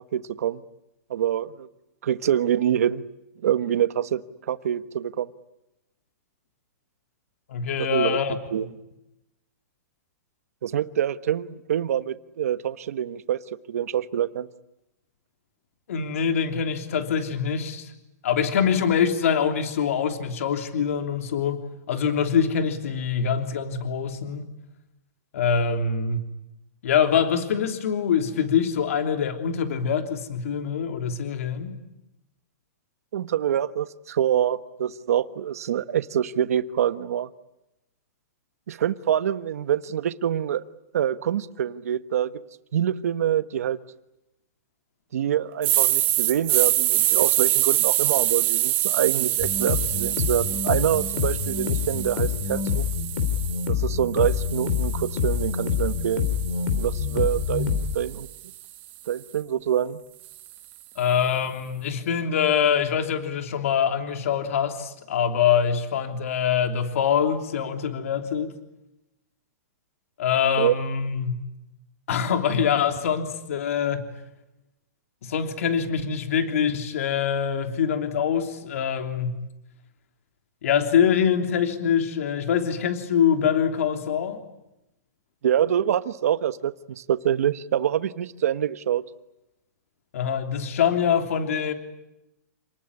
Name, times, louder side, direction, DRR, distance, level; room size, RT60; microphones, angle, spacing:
voice 1, 0.1-0.6 1.1-1.7 2.0-3.0 3.4-4.2 4.5-5.3 7.9-8.2 8.5-8.7 10.6-13.4 13.7-14.5 33.1-37.3 38.7-40.6 40.9-42.3 42.7-43.8 45.1-52.8 53.7-56.3 56.8-58.3 59.1-60.0 70.6-70.7 85.4-89.0, right 10 dB, 60° right, 13 dB, 1.3 m, -25 dB
voice 2, 7.5-8.3 15.9-17.9 18.2-24.5 25.3-26.2 26.8-31.7 61.0-68.5 70.2-71.4 72.1-74.0 75.2-79.4 80.6-84.4 90.1-91.7, left 7 dB, 55° left, 6 dB, 3.2 m, -24 dB
sound 1, 45.6-53.7 54.2-58.4, right 15 dB, 20° right, 1.3 m, -26 dB
sound 2, 49.4-58.0, left 7 dB, 40° left, 3.2 m, -27 dB
28.5 x 19.5 x 10.0 m, 0.90 s
hypercardioid pair, 175°, 9 cm